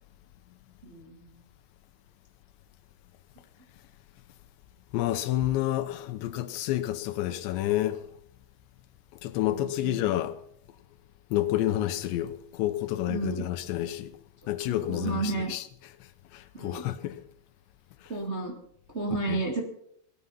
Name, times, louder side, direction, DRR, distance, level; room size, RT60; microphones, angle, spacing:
voice 1, 0.8-1.3 9.5-10.0 13.1-13.4 14.9-15.5 16.5-16.8 18.1-18.5 18.9-19.6, right 3 dB, 25° right, 1.6 m, -32 dB
voice 2, 4.9-8.0 9.2-10.4 11.3-14.2 14.5-15.9 16.3-17.2 19.3-19.4, left 14 dB, 80° left, 3.2 m, -29 dB
17.5 x 14.0 x 5.7 m
omnidirectional pair, 5.1 m